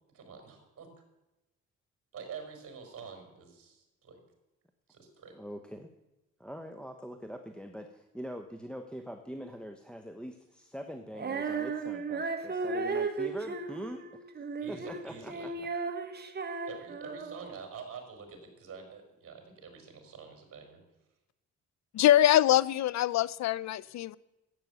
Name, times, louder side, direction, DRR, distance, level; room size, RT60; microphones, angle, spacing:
voice 1, 0.2-0.9 2.1-4.2 4.9-5.4 14.6-15.6 16.6-20.8, right 5 dB, 50° right, 5 dB, 5.0 m, -47 dB
voice 2, 5.3-5.9 6.4-14.0 14.7-15.5, equal, 5° left, 5 dB, 1.1 m, -43 dB
Female singing, 11.1-17.6, right 4 dB, 35° right, 1.5 m, -35 dB
voice 3, 21.9-24.2, left 12 dB, 65° left, 21 dB, 0.6 m, -24 dB
12.5 x 8.8 x 8.1 m, 0.99 s
cardioid pair, 90°, 30 cm